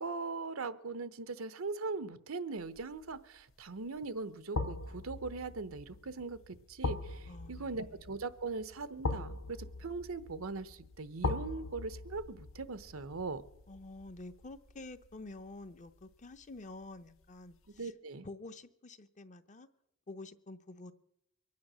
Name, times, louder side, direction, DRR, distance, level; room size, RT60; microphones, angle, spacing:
voice 1, 0.0-13.4 17.8-18.3, right 3 dB, 80° right, 0.9 m, -40 dB
sound 1, 2.8-3.1 4.5-15.5 15.9-16.0, left 3 dB, 70° left, 0.8 m, -41 dB
voice 2, 7.3-8.0 13.7-17.9 18.2-19.7 20.1-20.9, left 2 dB, 35° left, 0.8 m, -49 dB
23.5 x 9.5 x 6.3 m
head